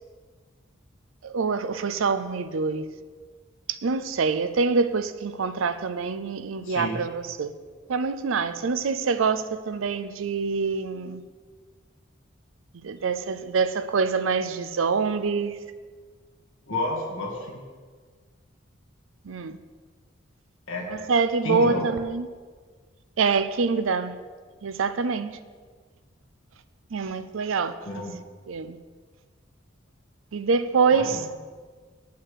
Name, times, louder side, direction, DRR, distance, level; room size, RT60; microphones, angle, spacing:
voice 1, 1.2-2.9 3.7-7.5 7.9-11.2 12.8-15.6 19.2-19.6 20.9-22.3 23.2-24.1 24.6-25.3 26.9-27.7 28.5-28.8 30.3-31.3, right 4 dB, 90° right, 0.5 m, -25 dB
voice 2, 6.6-7.0 16.7-17.6 20.7-20.9 21.4-21.9 27.8-28.2 30.9-31.2, left 1 dB, 85° left, 1.8 m, -30 dB
8.6 x 5.6 x 6.7 m
head